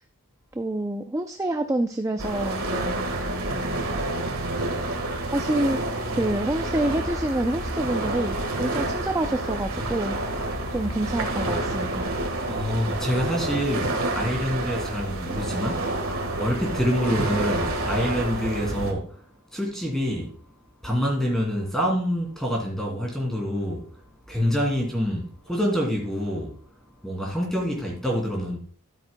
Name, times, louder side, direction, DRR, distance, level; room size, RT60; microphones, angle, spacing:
voice 1, 0.6-3.0 5.2-5.8 6.1-10.4 10.7-12.1, right 1 dB, 15° right, 0.4 m, -27 dB
sound 1, 2.2-18.9, right 2 dB, 70° right, 1.5 m, -29 dB
sound 2, 6.0-18.8, left 1 dB, 25° left, 4.7 m, -40 dB
voice 2, 12.5-15.8 16.4-19.2 19.5-20.3 20.8-23.9 24.3-26.5 27.0-28.6, equal, ahead, 2.5 m, -26 dB
12.0 x 9.0 x 2.2 m
head